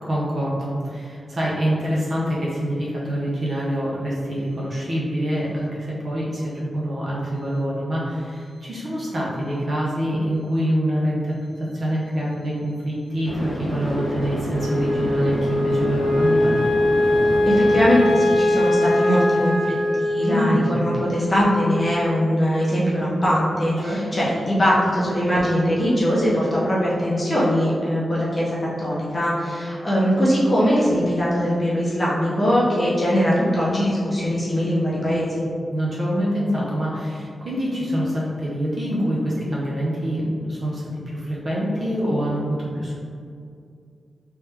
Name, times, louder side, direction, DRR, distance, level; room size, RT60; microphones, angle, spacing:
voice 1, 0.0-16.6 20.2-20.8 23.8-24.0 35.7-42.9, equal, 45° right, -6 dB, 0.7 m, -25 dB
sound 1, 8.4-8.5 13.3-17.9, equal, 5° left, 1.1 m, -29 dB
Wind instrument woodwind instrument, 13.9-22.4, left 1 dB, 65° left, 0.4 m, -22 dB
voice 2, 17.5-35.4, equal, 25° left, -7 dB, 0.7 m, -21 dB
3.3 x 3.1 x 3.3 m, 2.3 s
wide cardioid pair, 165°, 0 cm